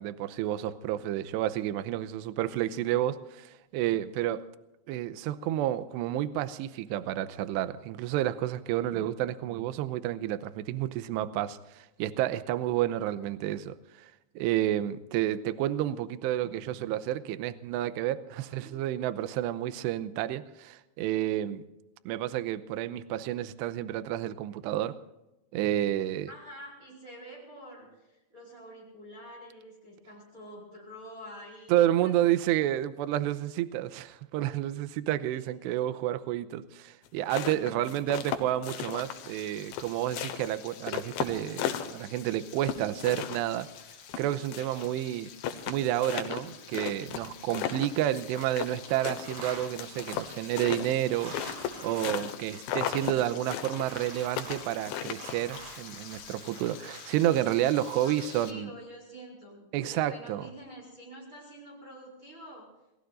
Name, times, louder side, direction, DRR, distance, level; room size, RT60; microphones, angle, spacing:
voice 1, 0.0-4.4 4.9-21.6 22.1-25.0 25.5-26.3 31.7-43.7 44.2-45.3 45.7-51.4 51.8-58.7 59.7-60.4, right 13 dB, 80° right, 13 dB, 2.7 m, -30 dB
voice 2, 18.5-18.8 26.3-32.1 35.3-35.8 58.0-62.7, equal, 20° right, -2 dB, 4.9 m, -47 dB
sound 1, 37.1-39.4 39.7-42.2 42.6-44.9 45.1-45.2 45.4-48.8 49.0-52.4 52.6-53.2 53.5-55.5, left 10 dB, 85° left, 3.6 m, -34 dB
Frying (food), 38.9-58.5, left 8 dB, 65° left, 3.7 m, -49 dB
sound 2, 47.9-48.5 48.7-57.2, right 2 dB, 55° right, 6.7 m, -47 dB
28.0 x 20.0 x 2.6 m, 0.96 s
omnidirectional pair, 5.3 m